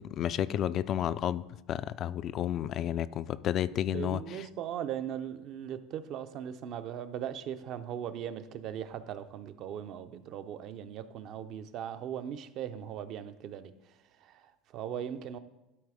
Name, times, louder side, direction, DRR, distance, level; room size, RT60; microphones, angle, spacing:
voice 1, 0.0-4.4, left 10 dB, 50° left, 0.3 m, -32 dB
voice 2, 3.7-13.9 14.2-15.4, right 9 dB, 55° right, 0.6 m, -39 dB
12.0 x 4.1 x 4.9 m
supercardioid pair, 95°, 0 cm